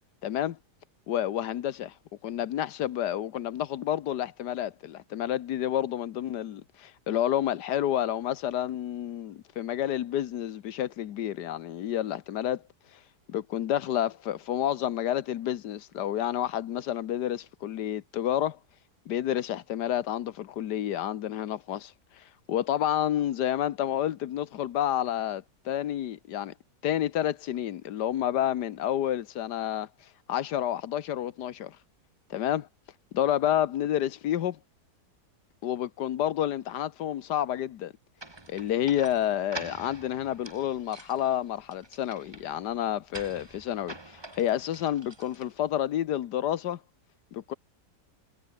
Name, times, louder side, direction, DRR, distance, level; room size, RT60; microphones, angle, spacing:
voice 1, 0.2-0.6 1.1-1.9 2.2-12.6 12.9-13.0 13.3-18.6 19.1-26.5 26.8-29.9 30.3-31.8 32.3-32.7 33.1-34.6 35.6-37.9 38.5-46.8 47.3-47.5, left 11 dB, 85° left, 1.5 m, -29 dB
sound 1, 38.2-45.8, right 2 dB, 15° right, 1.6 m, -46 dB
omnidirectional pair, 1.8 m